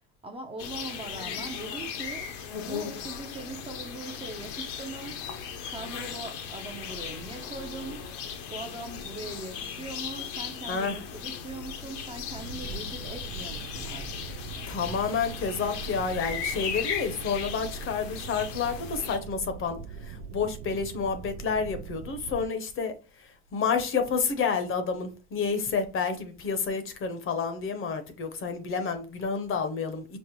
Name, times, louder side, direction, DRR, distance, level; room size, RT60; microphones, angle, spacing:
voice 1, 0.2-2.3 2.6-5.2 5.6-8.0 8.5-14.3, right 3 dB, 15° right, 0.5 m, -41 dB
sound 1, 0.6-19.2, left 7 dB, 70° left, 0.9 m, -37 dB
voice 2, 10.7-11.0 14.7-30.2, left 5 dB, 35° left, 0.8 m, -30 dB
sound 2, 12.4-22.5, right 6 dB, 80° right, 0.6 m, -42 dB
5.2 x 2.0 x 3.0 m
supercardioid pair, 110°, 36 cm